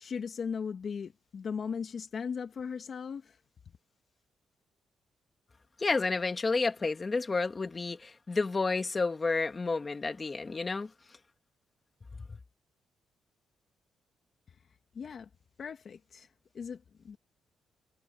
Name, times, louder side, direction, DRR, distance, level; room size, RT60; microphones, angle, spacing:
voice 1, 0.0-3.4 14.5-14.6 14.9-15.3 15.6-16.3 16.5-17.2, left 6 dB, 55° left, 1.9 m, -38 dB
voice 2, 5.8-10.9 12.3-12.4, left 3 dB, 30° left, 2.0 m, -30 dB
cardioid pair, 75°, 0 cm